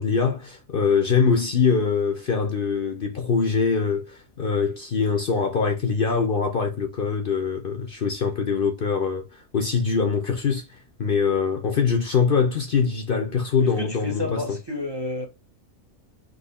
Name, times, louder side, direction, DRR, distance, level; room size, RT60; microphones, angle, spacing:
voice 1, 0.0-14.6, left 5 dB, 50° left, 0.8 m, -23 dB
voice 2, 13.6-15.3, left 2 dB, 20° right, 0.8 m, -31 dB
4.0 x 3.0 x 4.2 m
omnidirectional pair, 1.4 m